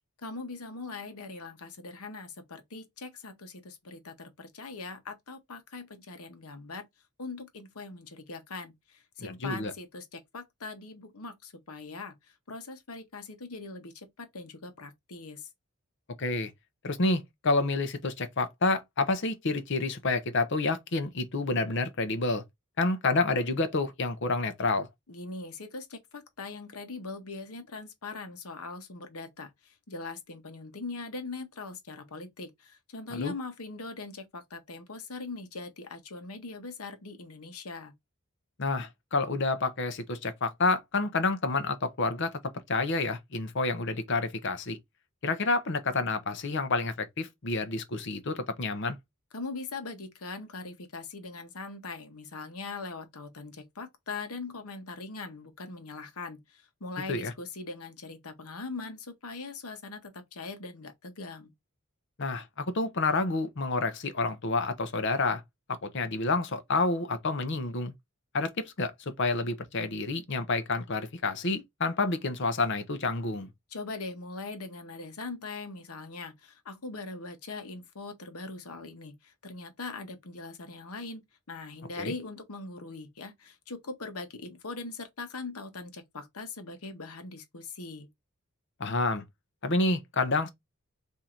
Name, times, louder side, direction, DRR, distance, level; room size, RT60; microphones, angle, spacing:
voice 1, 0.2-6.9 7.2-12.1 12.5-15.5 25.1-37.9 49.3-61.5 73.7-81.2 81.5-88.1, left 3 dB, 80° left, 1.0 m, -41 dB
voice 2, 9.2-9.7 16.2-16.5 16.8-22.4 22.8-24.9 33.1-33.3 38.6-42.4 42.7-44.8 45.2-49.0 57.1-57.3 62.2-65.4 65.8-67.9 68.3-68.9 69.2-73.5 82.0-82.1 88.8-89.2 89.6-90.5, left 3 dB, 55° left, 0.8 m, -29 dB
3.7 x 2.7 x 4.3 m
head